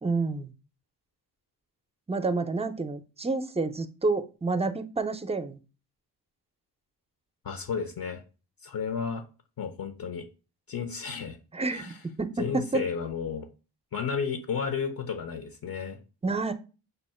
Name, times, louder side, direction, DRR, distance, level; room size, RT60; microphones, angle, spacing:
voice 1, 0.0-0.5 2.1-5.6 11.5-11.8 12.2-12.8 16.2-16.5, right 3 dB, 15° right, 10 dB, 0.5 m, -29 dB
voice 2, 7.4-8.2 8.6-9.2 9.6-10.3 10.7-11.4 11.7-12.0 12.4-13.5 13.9-16.0, left 6 dB, 55° left, 7 dB, 0.6 m, -32 dB
5.4 x 2.0 x 4.2 m, 0.32 s
cardioid pair, 70°, 41 cm